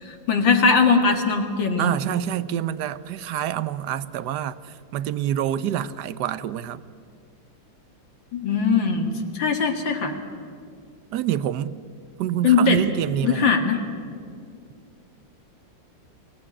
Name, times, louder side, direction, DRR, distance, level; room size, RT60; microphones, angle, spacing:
voice 1, 0.0-2.0 8.3-10.2 12.4-12.8 13.2-13.8, left 5 dB, 70° left, 2.5 m, -20 dB
voice 2, 1.8-6.8 11.1-11.7 12.2-13.5, right 11 dB, 65° right, 1.2 m, -27 dB
23.0 x 17.5 x 9.9 m
omnidirectional pair, 2.1 m